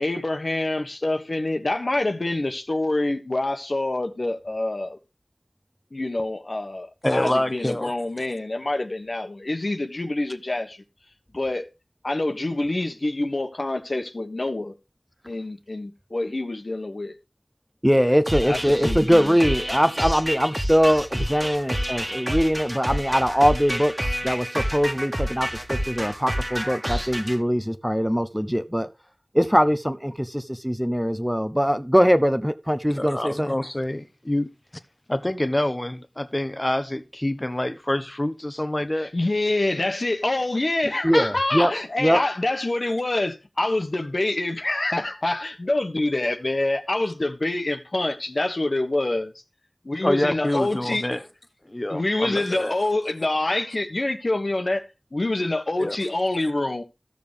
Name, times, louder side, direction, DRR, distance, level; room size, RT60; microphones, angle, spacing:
voice 1, 0.0-5.0 5.9-10.8 11.3-11.7 12.0-14.8 15.3-17.2 18.4-19.4 39.0-49.3 49.8-51.1 51.9-54.8 55.1-56.8, left 2 dB, 70° left, 1.4 m, -26 dB
voice 2, 7.0-7.9 32.9-34.5 35.1-39.1 50.0-51.2 51.7-52.7 55.8-56.0, left 1 dB, 30° left, 1.1 m, -26 dB
voice 3, 17.8-28.9 29.3-33.5 41.0-41.7 42.0-42.2, equal, 5° right, 0.8 m, -22 dB
sound 1, 18.3-27.4, equal, 20° right, 1.7 m, -29 dB
14.5 x 6.7 x 3.4 m
wide cardioid pair, 40°, 0 cm